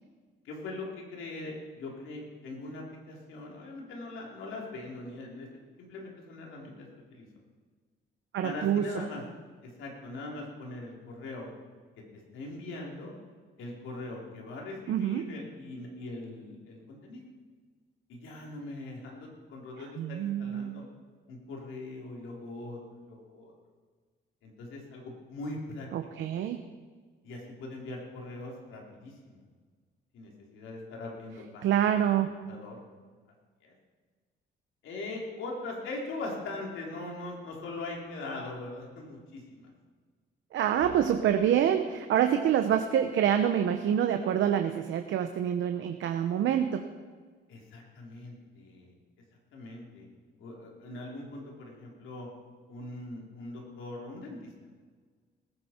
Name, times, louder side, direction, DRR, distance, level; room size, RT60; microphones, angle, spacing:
voice 1, 0.4-5.5 5.8-7.3 8.4-9.2 9.6-11.5 12.1-13.1 13.6-17.2 18.1-20.8 21.3-23.5 24.4-25.9 27.2-29.4 30.1-31.7 32.1-32.8 33.6-33.7 34.8-39.7 40.8-41.1 47.5-48.9 49.5-50.1 50.4-52.3 52.7-54.4, left 2 dB, 85° left, -2 dB, 3.4 m, -41 dB
voice 2, 8.3-8.9 14.9-15.3 20.0-20.8 25.9-26.6 31.6-32.3 40.5-46.9, right 9 dB, 75° right, 6 dB, 0.8 m, -26 dB
19.5 x 10.0 x 4.4 m, 1.5 s
cardioid pair, 90°, 20 cm